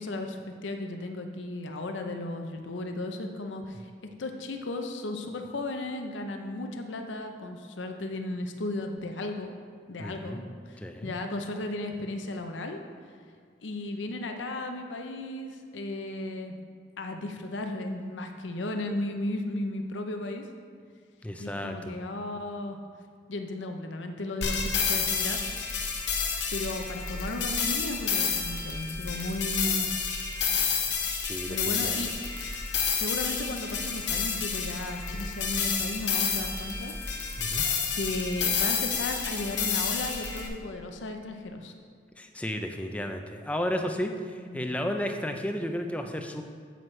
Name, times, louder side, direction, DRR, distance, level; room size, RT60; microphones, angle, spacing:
voice 1, 0.0-3.9 4.2-9.6 9.9-12.8 13.6-16.5 17.0-20.5 21.4-22.8 23.3-25.7 26.5-29.9 31.5-32.1 32.9-37.0 37.9-41.7 44.4-44.6, left 2 dB, 85° left, 5 dB, 0.6 m, -35 dB
voice 2, 10.0-10.4 10.8-11.1 21.2-22.0 29.1-29.3 31.2-32.0 37.4-37.6 42.2-46.4, equal, 5° left, 5 dB, 0.4 m, -33 dB
sound 1, 24.4-40.5, left 6 dB, 70° left, 1.0 m, -30 dB
9.0 x 7.8 x 3.2 m, 2.1 s
head